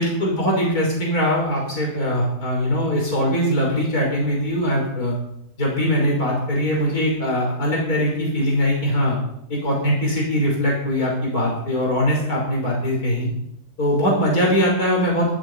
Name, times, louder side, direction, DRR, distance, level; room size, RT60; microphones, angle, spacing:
voice 1, 0.0-5.2 5.6-9.2 9.5-13.3 13.8-15.4, equal, 70° left, -2 dB, 6.1 m, -21 dB
19.5 x 11.5 x 5.5 m, 0.75 s
omnidirectional pair, 1.7 m